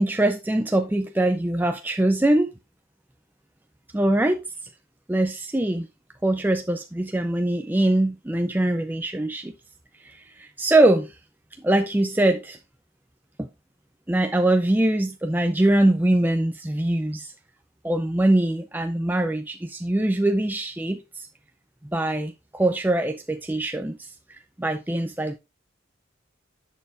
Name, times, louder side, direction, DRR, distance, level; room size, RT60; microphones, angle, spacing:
voice 1, 0.0-2.5 3.9-4.4 5.1-5.9 6.2-9.5 10.0-11.2 11.6-12.6 13.4-13.5 14.1-17.3 17.8-21.3 21.9-25.4, right 1 dB, 10° right, 0.4 m, -23 dB
10.5 x 6.4 x 2.4 m
head